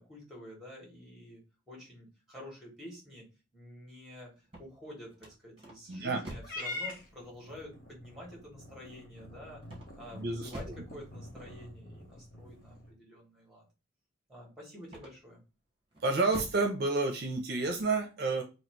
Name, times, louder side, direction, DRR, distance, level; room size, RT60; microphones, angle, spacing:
voice 1, 0.0-3.2 3.5-4.3 4.6-9.6 10.0-13.6 14.3-15.4, left 1 dB, ahead, -2 dB, 1.6 m, -49 dB
sound 1, 4.4-6.7 9.6-10.9 14.8-15.4 15.9-16.7, right 1 dB, 25° right, 1.1 m, -46 dB
voice 2, 5.9-6.2 10.1-10.7 16.0-18.4, right 3 dB, 50° right, 3 dB, 0.6 m, -30 dB
Purr / Meow, 6.4-12.9, left 2 dB, 45° left, 1.0 m, -45 dB
3.1 x 2.8 x 4.5 m, 0.31 s
head